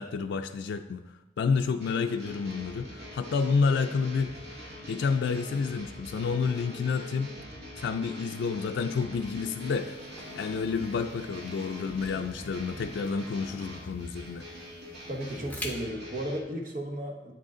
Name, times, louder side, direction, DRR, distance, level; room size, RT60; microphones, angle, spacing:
voice 1, 0.0-7.3 7.8-10.0 10.4-14.4, left 5 dB, 85° left, 5 dB, 0.3 m, -30 dB
sound 1, 1.8-16.4, left 1 dB, 85° right, 2.0 m, -43 dB
sound 2, 9.7-15.7, left 2 dB, 10° left, 0.7 m, -48 dB
voice 2, 15.1-17.3, right 1 dB, 50° right, 1 dB, 1.0 m, -34 dB
8.2 x 6.5 x 3.8 m, 1.0 s
head